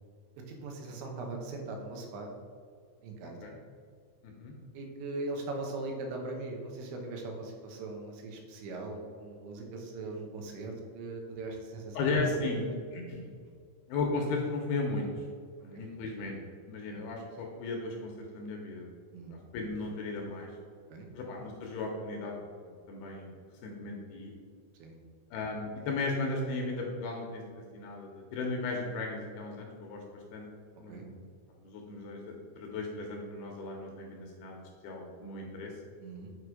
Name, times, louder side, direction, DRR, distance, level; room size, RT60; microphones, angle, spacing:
voice 1, 0.5-2.3 3.0-3.5 4.7-12.5 15.7-15.8 16.9-17.0 19.1-19.3 20.9-21.1 24.8-25.0 30.9-31.1 36.0-36.3, right 2 dB, 80° right, 1 dB, 3.4 m, -40 dB
voice 2, 3.2-3.5 4.2-4.5 11.9-12.7 12.9-13.3 13.9-15.1 15.6-16.4 16.7-18.9 19.3-20.5 21.1-22.3 22.9-23.3 23.6-24.3 25.3-30.0 30.3-30.5 30.8-31.2 31.6-34.6 34.8-35.7, left 3 dB, 75° left, 0 dB, 2.5 m, -35 dB
8.3 x 4.8 x 4.8 m, 2.1 s
omnidirectional pair, 5.2 m